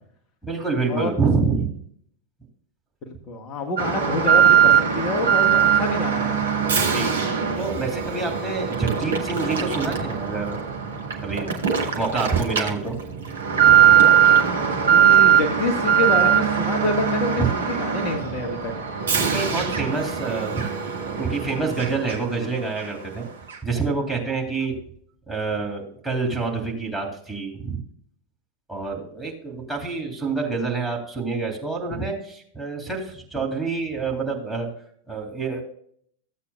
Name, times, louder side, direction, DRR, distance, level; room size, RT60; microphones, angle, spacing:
voice 1, 0.4-1.8 6.9-7.1 7.6-10.6 11.2-11.5 12.0-13.0 13.7-13.8 17.4-17.5 19.2-20.6 21.0-23.3 23.6-24.7 25.3-27.8 28.7-34.7 35.1-35.6, right 4 dB, 5° right, -2 dB, 3.3 m, -27 dB
voice 2, 3.0-6.4 14.9-18.7, left 2 dB, 35° left, 2 dB, 1.2 m, -27 dB
Alarm, 3.8-22.4 22.8-22.9 23.5-23.6, right 8 dB, 65° right, 1.6 m, -21 dB
15.5 x 8.4 x 2.3 m, 0.62 s
figure-of-eight pair, 90°, 0 cm